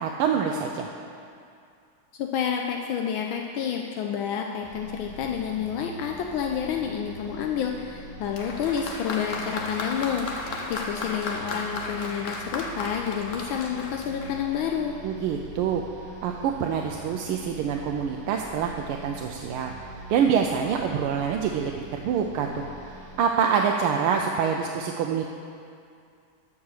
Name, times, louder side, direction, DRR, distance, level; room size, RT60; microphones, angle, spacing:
voice 1, 0.0-0.9 15.0-15.8 16.2-19.7 20.1-22.7 23.2-25.3, right 7 dB, 90° right, 2 dB, 1.5 m, -26 dB
voice 2, 2.1-14.9, left 8 dB, 75° left, 2 dB, 1.3 m, -29 dB
sound 1, 4.6-23.2, right 1 dB, 10° right, 1.6 m, -44 dB
Applause, 8.3-14.8 15.7-15.8, left 3 dB, 55° left, 0.9 m, -35 dB
13.0 x 4.9 x 6.5 m, 2.4 s
omnidirectional pair, 2.3 m